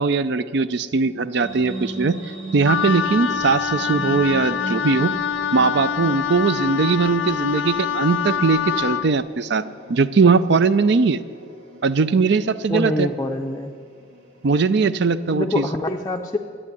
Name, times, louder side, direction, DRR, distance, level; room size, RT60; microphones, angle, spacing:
voice 1, 0.0-2.2 2.5-5.1 5.5-9.6 9.9-11.2 11.8-13.1 14.4-15.6, right 4 dB, 60° right, 14 dB, 0.5 m, -20 dB
sound 1, 1.4-15.4, right 2 dB, 85° right, 2.2 m, -38 dB
Wind instrument woodwind instrument, 2.7-9.1, left 8 dB, 75° left, 0.5 m, -25 dB
voice 2, 3.9-4.2 12.7-13.7 15.3-16.4, left 2 dB, 15° left, 1 dB, 0.5 m, -25 dB
11.0 x 8.8 x 9.6 m, 2.2 s
head